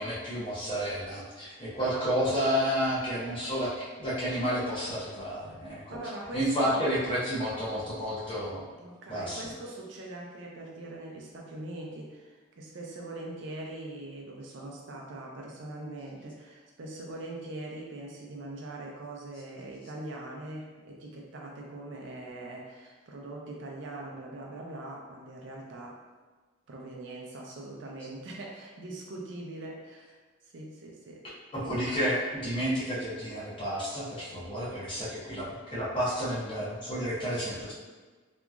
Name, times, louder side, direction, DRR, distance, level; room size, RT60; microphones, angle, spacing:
voice 1, 0.0-6.0 6.3-8.7 9.1-9.5 31.5-37.7, equal, 25° left, -9 dB, 0.8 m, -31 dB
voice 2, 1.8-2.1 5.9-6.9 8.8-26.0 26.7-30.2 30.4-31.2, right 2 dB, 65° right, -1 dB, 0.5 m, -42 dB
2.8 x 2.3 x 2.3 m, 1.3 s
head